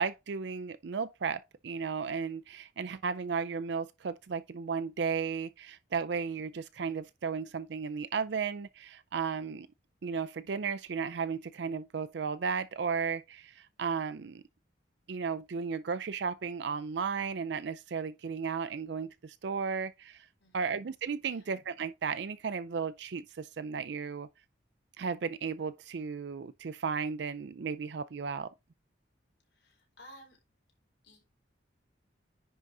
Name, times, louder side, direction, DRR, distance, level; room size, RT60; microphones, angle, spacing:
voice 1, 0.0-9.7 10.0-14.4 15.1-20.3 20.5-24.3 25.0-28.5, right 5 dB, 60° right, 0.4 m, -34 dB
voice 2, 20.4-20.8 21.3-21.5 29.5-30.4 31.0-31.2, equal, 60° left, 4.5 m, -55 dB
10.0 x 3.9 x 4.7 m
head